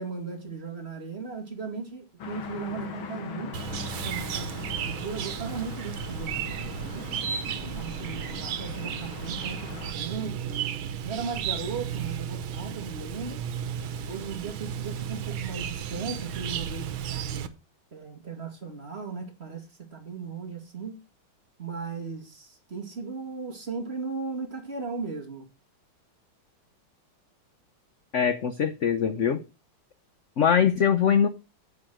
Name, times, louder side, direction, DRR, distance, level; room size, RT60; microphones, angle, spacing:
voice 1, 0.0-3.5 4.0-7.0 7.6-10.6 11.0-13.4 14.1-17.4 17.9-21.0 21.6-25.5, right 5 dB, 30° right, 2.4 m, -37 dB
sound 1, 2.2-9.9, left 5 dB, 80° left, 2.4 m, -40 dB
Chirp tweet, 3.5-17.5, right 8 dB, 85° right, 1.8 m, -34 dB
voice 2, 28.1-29.4 30.4-31.3, left 7 dB, 60° left, 0.7 m, -22 dB
8.5 x 8.5 x 6.3 m
omnidirectional pair, 2.2 m